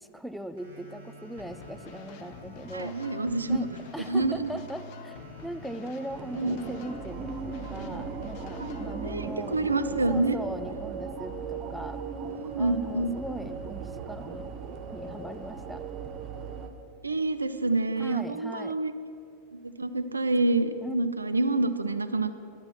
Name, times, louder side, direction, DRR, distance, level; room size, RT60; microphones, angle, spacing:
voice 1, 0.0-3.2 3.5-3.7 3.9-9.7 10.1-12.0 12.6-14.5 14.9-15.8 18.0-18.7 20.8-21.0, right 1 dB, ahead, 10 dB, 0.4 m, -39 dB
sound 1, 0.6-11.5, right 1 dB, 65° right, 2.1 m, -48 dB
sound 2, 1.4-8.9, left 7 dB, 45° left, 0.7 m, -48 dB
voice 2, 2.7-3.6 4.1-4.5 6.4-6.6 8.6-8.7 9.0-10.4 12.3-13.1 16.6-16.7 17.0-18.9 19.5-22.3, right 2 dB, 80° right, 10 dB, 0.5 m, -27 dB
sound 3, 6.1-16.7, right 5 dB, 35° right, 0.7 m, -38 dB
11.5 x 5.7 x 7.2 m, 2.4 s
figure-of-eight pair, 90°, 0 cm